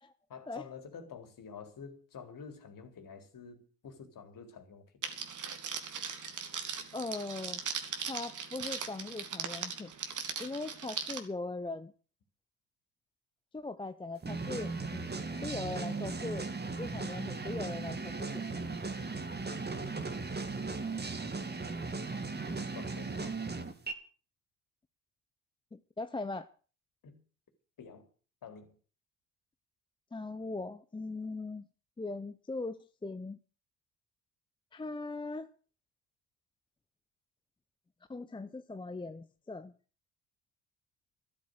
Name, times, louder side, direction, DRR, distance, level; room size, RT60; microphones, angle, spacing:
voice 1, 0.3-5.0 22.4-23.4 27.0-27.2 27.8-28.1 28.4-28.8, left 6 dB, 45° left, 3.9 m, -49 dB
Crackle, 5.0-11.2, right 6 dB, 40° right, 2.7 m, -39 dB
voice 2, 6.9-7.6 8.0-9.9 10.4-11.9 13.5-15.1 15.4-16.5 16.8-18.4 25.7-26.5 30.1-31.7 32.0-33.4 34.7-35.5 38.1-39.7, left 3 dB, 10° left, 0.7 m, -40 dB
sound 1, 14.2-23.9, right 3 dB, 20° right, 2.3 m, -37 dB
13.0 x 12.5 x 6.6 m
hypercardioid pair, 60°, 46 cm